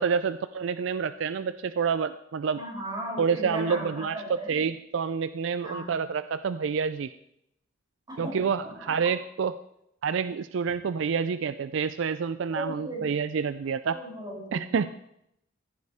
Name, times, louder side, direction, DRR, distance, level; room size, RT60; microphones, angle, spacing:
voice 1, 0.0-2.6 3.2-7.1 8.2-9.6 10.0-14.0 14.5-14.9, right 6 dB, 70° right, 13 dB, 0.4 m, -28 dB
voice 2, 2.5-4.6 5.6-6.1 8.1-8.3 8.6-8.9 12.5-13.1 13.9-14.9, equal, 20° right, -6 dB, 7.0 m, -37 dB
15.0 x 14.5 x 3.5 m, 0.78 s
head